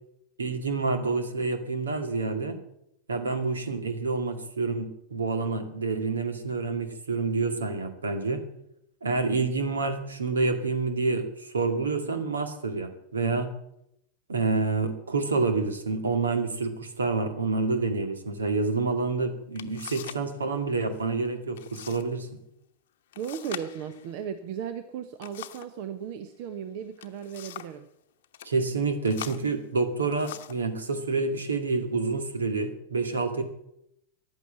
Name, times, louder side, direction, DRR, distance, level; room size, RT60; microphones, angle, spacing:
voice 1, 0.4-2.6 3.1-8.4 9.0-13.5 14.3-22.4 28.4-33.4, right 3 dB, 70° right, 8 dB, 2.1 m, -28 dB
sound 1, 19.1-19.2 19.6-20.3 20.6-21.1 21.6-22.1 22.4-22.5 23.1-25.8 26.8-27.8 28.2-28.5 29.0-30.7 31.5-31.6 32.2-32.7, left 12 dB, 55° left, 0.9 m, -43 dB
voice 2, 23.2-27.9, right 8 dB, 45° right, 10 dB, 1.0 m, -36 dB
15.0 x 11.0 x 7.5 m, 0.80 s
figure-of-eight pair, 90°, 0 cm